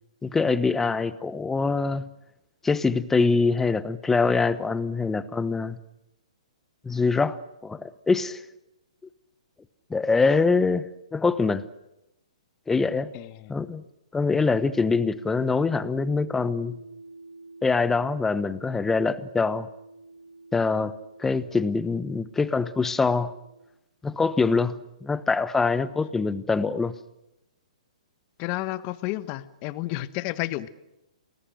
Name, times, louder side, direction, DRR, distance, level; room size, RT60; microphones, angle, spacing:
voice 1, 0.2-2.0 2.6-5.8 6.8-8.4 9.9-11.6 12.7-13.1 13.5-13.8 14.1-16.8 17.6-19.7 20.5-20.9 21.2-23.3 24.0-26.9, left 4 dB, 10° left, 1.0 m, -24 dB
voice 2, 13.1-13.5 28.4-30.7, left 17 dB, 35° left, 1.3 m, -31 dB
sound 1, 14.8-23.7, right 2 dB, 65° right, 7.8 m, -47 dB
29.5 x 20.0 x 6.5 m
hypercardioid pair, 125°, 4 cm